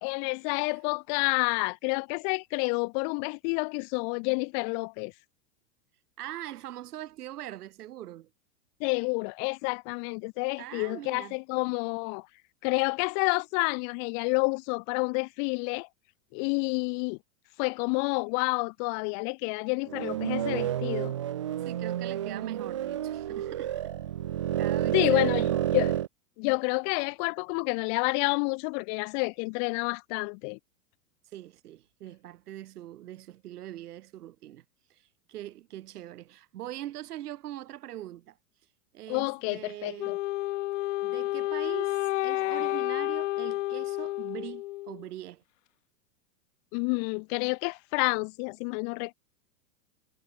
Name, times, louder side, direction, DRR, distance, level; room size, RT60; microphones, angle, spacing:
voice 1, 0.0-5.1 8.8-12.3 12.6-15.9 16.3-17.2 17.6-21.1 24.9-25.9 26.4-30.6 39.1-40.2 46.7-49.1, left 40 dB or more, 30° left, 1.4 m, -29 dB
voice 2, 6.2-8.3 10.6-11.4 21.6-23.8 24.6-25.7 31.3-34.6 34.9-38.4 38.9-40.2 41.0-45.4, right 13 dB, 70° right, 6.5 m, -42 dB
sound 1, 19.9-26.1, right 11 dB, 20° right, 0.3 m, -30 dB
Wind instrument woodwind instrument, 40.0-45.0, left 17 dB, 50° left, 0.6 m, -30 dB
supercardioid pair, 165°, 48 cm